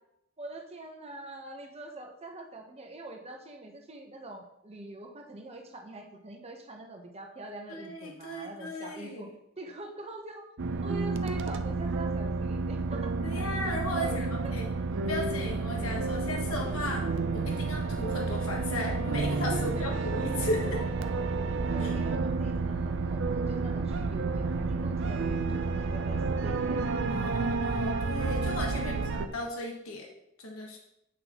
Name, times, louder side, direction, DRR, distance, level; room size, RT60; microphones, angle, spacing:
voice 1, 0.4-9.3 9.6-10.5 10.8-13.1 14.0-14.7 19.5-20.1 20.7-21.1 21.7-27.3 28.7-29.0, right 2 dB, 30° right, 2 dB, 1.0 m, -44 dB
voice 2, 7.7-9.2 13.2-14.7 15.1-20.8 21.8-21.9 27.1-30.1 30.4-30.8, left 1 dB, 75° left, 0 dB, 1.3 m, -36 dB
sound 1, 10.6-29.3, right 3 dB, 60° right, 0.5 m, -30 dB
8.4 x 6.0 x 3.0 m, 0.80 s
head